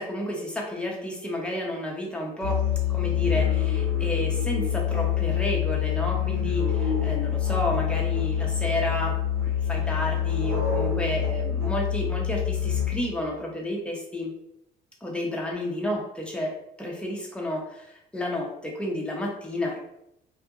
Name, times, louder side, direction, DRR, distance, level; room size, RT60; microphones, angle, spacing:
voice 1, 0.0-2.6 2.9-9.1 9.6-14.3 15.0-16.5 16.8-19.8, left 1 dB, 5° left, -1 dB, 0.7 m, -31 dB
Musical instrument, 2.4-13.2, left 9 dB, 80° right, 1.1 m, -26 dB
2.7 x 2.5 x 2.4 m, 0.82 s
cardioid pair, 110°, 17 cm